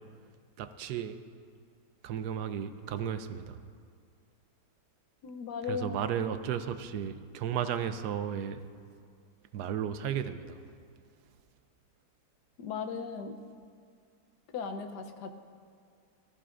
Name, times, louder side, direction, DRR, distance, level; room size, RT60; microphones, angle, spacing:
voice 1, 0.6-1.2 2.0-3.6 5.7-8.6 9.5-10.6, right 9 dB, 75° right, 10 dB, 1.2 m, -34 dB
voice 2, 5.2-6.0 12.6-13.4 14.5-15.3, left 5 dB, 85° left, 7 dB, 1.4 m, -37 dB
20.0 x 14.0 x 2.5 m, 2.2 s
omnidirectional pair, 1.7 m